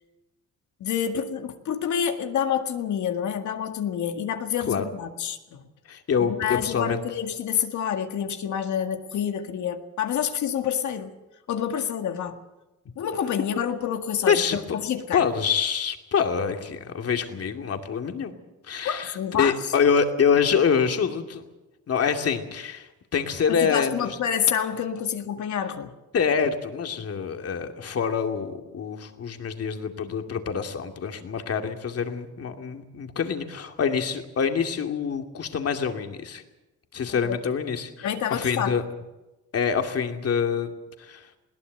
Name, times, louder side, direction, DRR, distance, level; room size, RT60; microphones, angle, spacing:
voice 1, 0.8-5.6 6.2-11.1 11.5-12.4 13.0-15.3 18.8-19.6 23.5-25.9 37.3-37.4 38.0-38.8, left 8 dB, 70° left, 6 dB, 1.9 m, -28 dB
voice 2, 5.9-7.0 14.3-14.8 15.1-18.4 18.7-21.4 21.9-24.1 26.1-36.4 36.9-38.8 39.5-40.7 41.0-41.3, left 6 dB, 50° left, 5 dB, 2.5 m, -26 dB
21.0 x 17.5 x 7.9 m, 1.0 s
cardioid pair, 90°, 30 cm